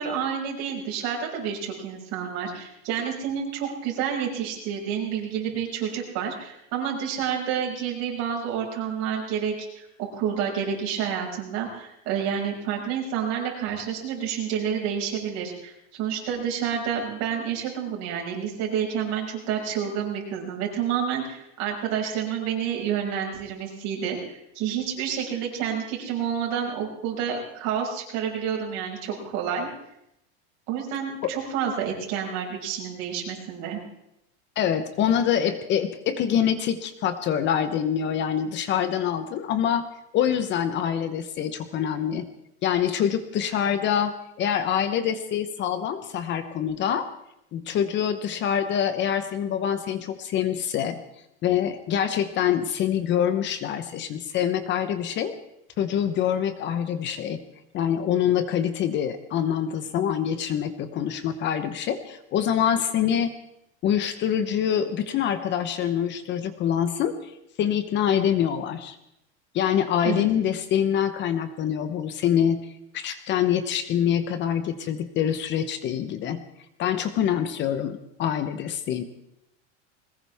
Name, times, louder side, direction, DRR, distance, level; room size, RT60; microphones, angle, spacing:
voice 1, 0.0-29.7 30.7-33.8 70.0-70.3, right 8 dB, 50° right, -1 dB, 5.8 m, -29 dB
voice 2, 34.6-39.8 40.1-42.3 42.6-47.1 47.5-51.0 51.4-55.4 55.8-57.4 57.7-63.3 63.8-67.3 67.6-69.0 69.5-76.4 76.8-79.0, left 9 dB, 35° left, 11 dB, 0.9 m, -25 dB
21.0 x 19.0 x 3.5 m, 0.80 s
supercardioid pair, 155°, 34 cm